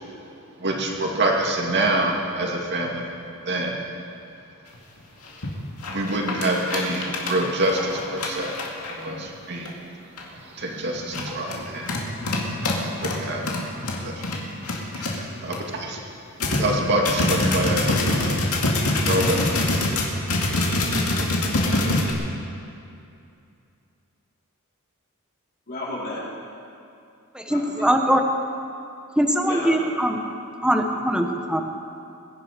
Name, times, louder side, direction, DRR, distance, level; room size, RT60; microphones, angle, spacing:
voice 1, 0.6-3.1 3.5-3.8 5.9-8.6 8.9-9.7 10.5-11.9 13.0-13.4 14.0-14.1 15.0-15.2 15.9-16.0 16.5-18.4 19.1-19.6, right 1 dB, 50° right, 0 dB, 2.3 m, -25 dB
sound 1, 4.7-4.8 5.3-5.5 5.8-9.0 9.7-9.8 10.2-10.4 11.0-15.6 16.0-16.1 16.4-22.1, left 2 dB, 80° left, 2.2 m, -25 dB
voice 2, 25.7-26.3 27.5-27.9 29.5-29.8, left 2 dB, 45° left, -7 dB, 4.7 m, -33 dB
voice 3, 27.3-28.2 29.2-30.2 30.6-31.6, equal, 5° right, 3 dB, 1.1 m, -21 dB
22.0 x 10.5 x 5.1 m, 2.6 s
head